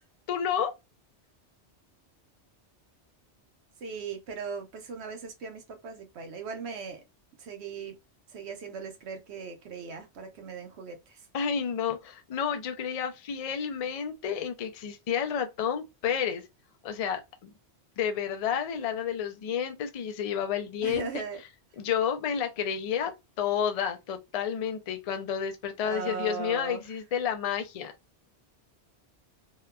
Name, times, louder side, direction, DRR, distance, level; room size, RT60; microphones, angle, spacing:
voice 1, 0.3-0.7 11.3-16.5 16.8-17.5 18.0-21.2 21.8-23.1 23.4-27.9, left 8 dB, 70° left, 0.3 m, -30 dB
voice 2, 3.8-7.0 7.4-8.0 8.3-11.2 20.8-21.4 25.8-26.8, right 5 dB, 70° right, 0.9 m, -38 dB
2.8 x 2.1 x 2.2 m
omnidirectional pair, 1.2 m